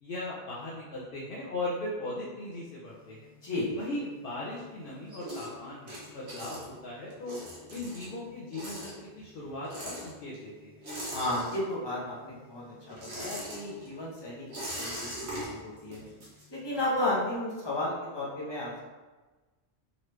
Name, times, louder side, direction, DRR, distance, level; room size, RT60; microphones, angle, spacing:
voice 1, 0.0-3.3 3.8-7.4 7.7-10.7, left 1 dB, 60° left, -6 dB, 0.8 m, -38 dB
sound 1, 2.9-4.5 4.8-12.0 12.3-17.0, equal, 90° right, 1.4 m, -42 dB
voice 2, 11.1-15.3 15.6-16.0 16.5-18.7, left 1 dB, 25° left, -6 dB, 1.0 m, -33 dB
3.8 x 3.1 x 3.2 m, 1.2 s
omnidirectional pair, 1.1 m